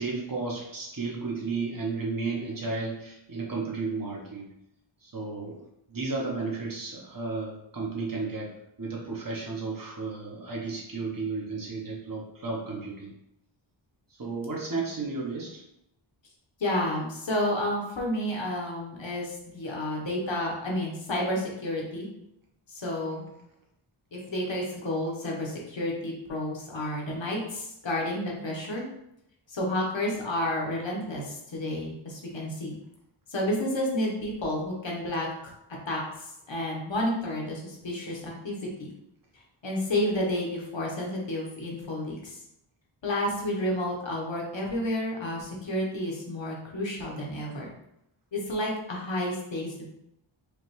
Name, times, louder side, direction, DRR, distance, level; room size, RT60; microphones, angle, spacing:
voice 1, 0.0-4.5 5.0-5.6 5.9-8.5 8.8-13.1 14.2-15.6, right 3 dB, 45° right, -3 dB, 1.1 m, -33 dB
voice 2, 16.6-22.1 22.7-23.2 24.1-28.8 29.5-32.8 33.3-35.5 35.9-38.9 39.6-42.4 43.0-47.7 48.3-49.8, left 1 dB, 65° left, -2 dB, 1.2 m, -31 dB
5.0 x 2.5 x 3.2 m, 0.81 s
wide cardioid pair, 90°, 49 cm